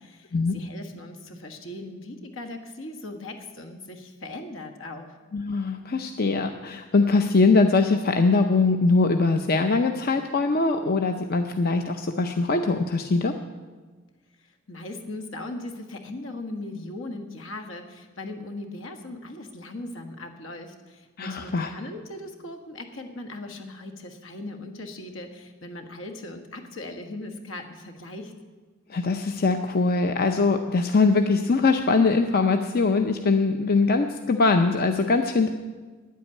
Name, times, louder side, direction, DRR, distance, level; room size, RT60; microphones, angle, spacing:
voice 1, 0.0-5.2 14.4-28.3, left 2 dB, 75° left, 5 dB, 1.6 m, -39 dB
voice 2, 5.3-13.3 21.2-21.7 28.9-35.5, left 3 dB, 50° left, 6 dB, 0.6 m, -22 dB
9.9 x 8.4 x 9.7 m, 1.4 s
head